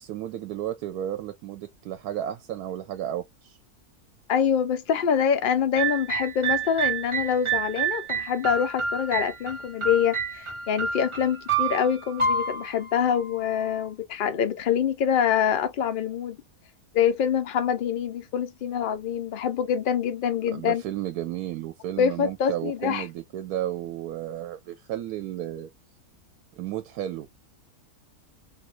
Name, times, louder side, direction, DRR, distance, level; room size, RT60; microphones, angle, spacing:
voice 1, 0.0-3.5 20.5-25.7 26.6-27.3, right 12 dB, 90° right, 1.1 m, -33 dB
voice 2, 4.3-16.4 16.9-20.8 22.0-23.1, left 8 dB, 80° left, 0.4 m, -25 dB
sound 1, 5.8-13.8, right 5 dB, 35° right, 0.4 m, -29 dB
2.6 x 2.4 x 2.9 m
omnidirectional pair, 1.6 m